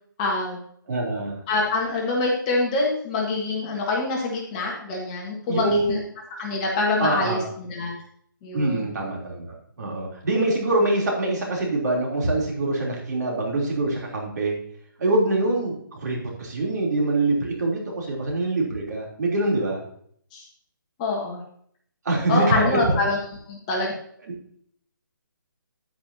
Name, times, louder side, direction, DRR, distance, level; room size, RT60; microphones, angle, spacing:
voice 1, 0.2-0.6 1.5-6.0 6.3-7.9 8.4-8.9 20.3-20.4 21.0-21.4 22.3-23.2 23.5-23.9, left 2 dB, 20° left, -2 dB, 1.6 m, -25 dB
voice 2, 0.9-1.4 5.5-6.0 7.0-7.5 8.5-14.5 15.0-19.8 22.0-22.9 24.2-24.3, right 2 dB, 50° right, -1 dB, 3.4 m, -24 dB
9.9 x 8.9 x 2.8 m, 0.64 s
hypercardioid pair, 165°, 11 cm